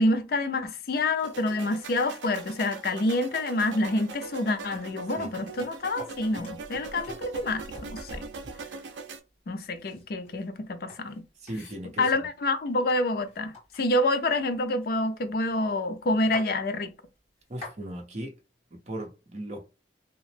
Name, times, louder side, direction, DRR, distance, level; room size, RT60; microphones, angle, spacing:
voice 1, 0.0-8.2 9.5-11.2 12.0-16.9, left 2 dB, 55° left, 0.4 m, -27 dB
sound 1, 1.2-9.2, right 4 dB, 80° right, 0.5 m, -41 dB
sound 2, 3.6-3.7 4.1-4.2 4.5-4.9 5.2-8.8 9.7-12.3 12.9-13.0 13.2-15.3 15.7-15.8 16.0-16.5 17.2-17.8, left 2 dB, 35° left, 1.6 m, -47 dB
voice 2, 11.4-12.0 17.5-18.3 18.7-19.6, right 1 dB, 40° right, 0.7 m, -37 dB
2.9 x 2.0 x 3.2 m
head